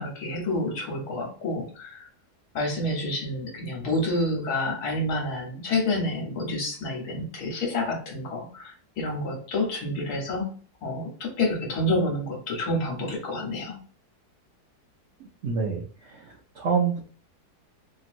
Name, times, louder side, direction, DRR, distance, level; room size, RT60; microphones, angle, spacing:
voice 1, 0.0-2.1 2.5-10.5 10.8-13.8, left 1 dB, 70° left, 0 dB, 1.4 m, -28 dB
voice 2, 15.4-17.0, right 6 dB, 70° right, -2 dB, 0.7 m, -27 dB
2.9 x 2.8 x 2.5 m, 0.42 s
omnidirectional pair, 1.7 m